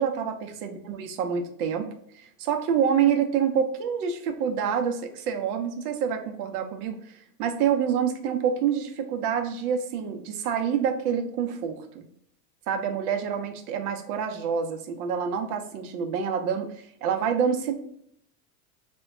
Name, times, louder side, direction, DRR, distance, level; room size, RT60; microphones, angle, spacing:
voice 1, 0.0-1.9 2.1-12.0 12.7-16.7 17.0-17.7, right 7 dB, 70° right, 6 dB, 0.7 m, -27 dB
2.2 x 2.1 x 3.5 m, 0.72 s
supercardioid pair, 120°, 47 cm